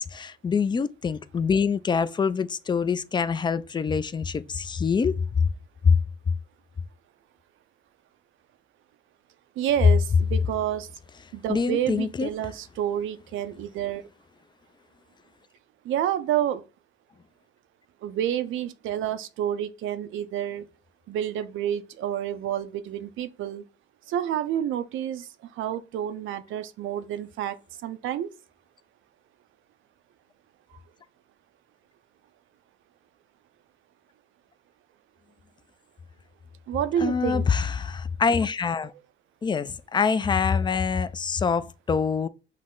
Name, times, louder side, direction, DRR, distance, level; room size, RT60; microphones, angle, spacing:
voice 1, 0.0-5.5 5.8-6.0 11.5-12.3 37.0-38.9 39.4-42.3, left 5 dB, 25° left, 0.3 m, -25 dB
voice 2, 9.6-10.9 11.3-14.1 15.8-16.6 18.0-20.7 21.1-23.6 24.1-28.3 30.7-30.8 36.7-37.5, right 10 dB, 80° right, 0.5 m, -29 dB
5.7 x 2.1 x 3.7 m
cardioid pair, 90°, 20 cm